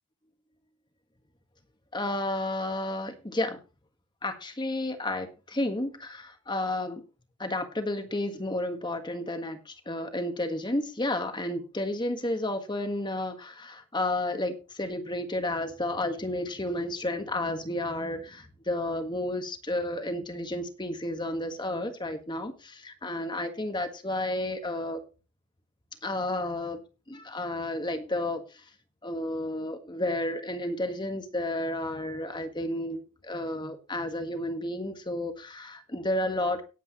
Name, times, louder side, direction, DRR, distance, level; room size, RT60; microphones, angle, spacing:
voice 1, 1.9-3.6 4.2-7.0 7.4-25.0 26.0-26.8 27.1-28.4 29.0-36.6, left 1 dB, 20° left, 7 dB, 1.5 m, -31 dB
18.0 x 8.4 x 3.1 m, 0.31 s
head